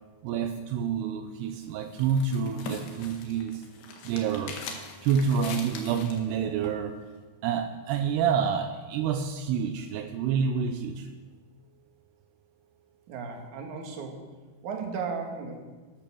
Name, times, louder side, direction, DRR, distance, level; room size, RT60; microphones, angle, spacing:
voice 1, 0.2-3.7 4.0-4.6 5.0-6.9 7.4-11.1, right 7 dB, 80° right, 7 dB, 2.8 m, -28 dB
sound 1, 1.4-6.3, left 5 dB, 90° left, 3.9 m, -42 dB
voice 2, 13.1-14.3 14.6-15.7, right 5 dB, 55° right, 2 dB, 2.8 m, -35 dB
13.0 x 12.0 x 6.3 m, 1.3 s
omnidirectional pair, 4.8 m